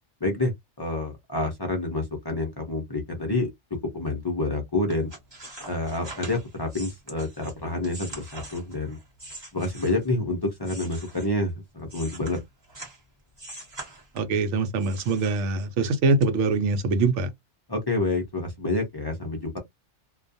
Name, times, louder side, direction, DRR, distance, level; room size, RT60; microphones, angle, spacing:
voice 1, 0.2-3.5 3.9-5.1 5.7-9.0 9.5-12.4 17.7-19.6, left 2 dB, 35° left, 0.4 m, -28 dB
sound 1, 4.9-10.2 10.6-13.0 13.4-14.4 14.8-15.8 16.2-16.3, right 2 dB, 20° right, 0.9 m, -43 dB
voice 2, 14.1-17.3, right 3 dB, 70° right, 0.9 m, -23 dB
2.3 x 2.2 x 2.5 m
omnidirectional pair, 1.4 m